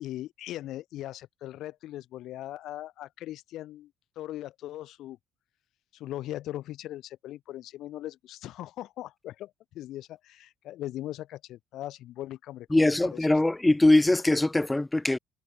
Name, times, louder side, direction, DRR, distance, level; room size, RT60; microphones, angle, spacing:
voice 1, 0.0-5.2 5.9-13.2, left 14 dB, 70° left, 2.2 m, -39 dB
voice 2, 12.7-15.2, left 2 dB, 10° left, 1.4 m, -22 dB
cardioid pair, 125°, 0 cm